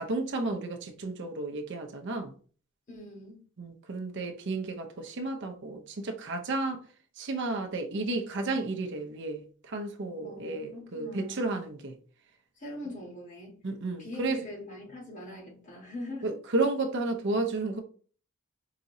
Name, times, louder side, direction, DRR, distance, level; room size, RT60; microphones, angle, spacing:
voice 1, 0.0-2.3 3.6-6.8 7.2-12.0 13.6-14.4 16.2-17.8, right 2 dB, 55° right, 0.6 m, -32 dB
voice 2, 2.9-3.4 10.2-11.5 12.6-13.6 14.0-16.4, left 1 dB, 35° left, 1.4 m, -42 dB
4.8 x 2.9 x 2.6 m
head